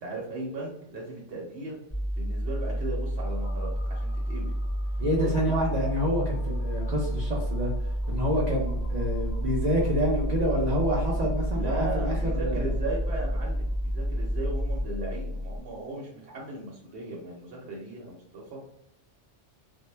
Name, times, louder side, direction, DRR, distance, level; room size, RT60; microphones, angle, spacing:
voice 1, 0.0-1.8 2.1-4.5 5.2-5.7 11.5-18.6, right 2 dB, 70° right, -2 dB, 0.9 m, -37 dB
sound 1, 1.9-14.8, equal, 5° left, 0.5 m, -30 dB
sound 2, 3.3-15.6, equal, 60° left, 0.4 m, -38 dB
voice 2, 5.0-7.7 8.1-12.7, equal, 50° right, -3 dB, 0.5 m, -28 dB
2.1 x 2.0 x 3.1 m, 0.78 s
omnidirectional pair, 1.2 m